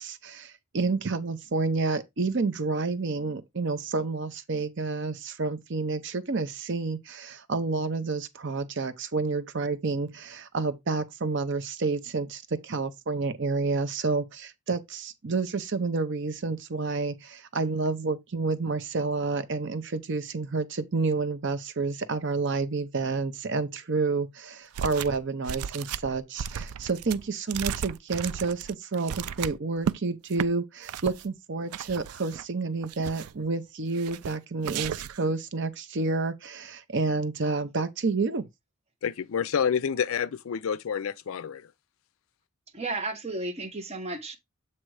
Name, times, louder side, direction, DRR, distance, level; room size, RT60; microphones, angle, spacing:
voice 1, 0.0-38.5, right 3 dB, 55° right, 0.7 m, -29 dB
sound 1, 24.7-25.2 25.4-30.0 30.3-30.5 30.9-31.2 31.7-32.4 32.8-33.4 33.9-34.3 34.6-35.3, right 8 dB, 90° right, 0.4 m, -34 dB
voice 2, 39.0-41.7, left 7 dB, 70° left, 0.4 m, -28 dB
voice 3, 42.7-44.4, right 2 dB, 30° right, 1.0 m, -33 dB
7.6 x 3.0 x 4.7 m
head